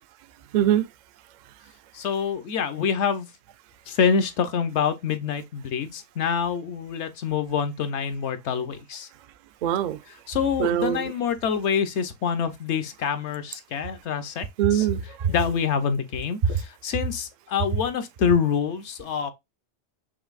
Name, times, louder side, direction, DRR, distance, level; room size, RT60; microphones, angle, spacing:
voice 1, 0.5-0.9 9.6-10.0 10.6-11.1 14.6-15.3, right 10 dB, 65° right, 0.4 m, -22 dB
voice 2, 1.9-3.3 3.9-9.1 10.3-14.4 14.7-14.9 15.3-19.3, left 6 dB, 70° left, 1.0 m, -26 dB
5.8 x 2.6 x 2.3 m
omnidirectional pair, 1.2 m